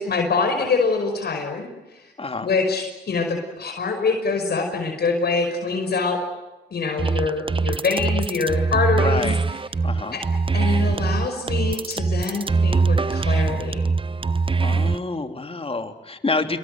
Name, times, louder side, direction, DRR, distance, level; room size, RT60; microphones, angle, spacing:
voice 1, 0.0-1.7 1.9-2.1 2.4-6.2 6.7-9.3 10.1-10.2 10.5-13.9, left 4 dB, 65° left, 4 dB, 5.5 m, -24 dB
voice 2, 2.2-2.5 9.0-9.4 9.8-10.2 14.6-16.6, left 3 dB, 30° left, 6 dB, 3.3 m, -27 dB
sound 1, 7.0-15.0, right 4 dB, 30° right, 0.9 m, -22 dB
27.5 x 23.0 x 7.8 m, 1.1 s
supercardioid pair, 55°, 18 cm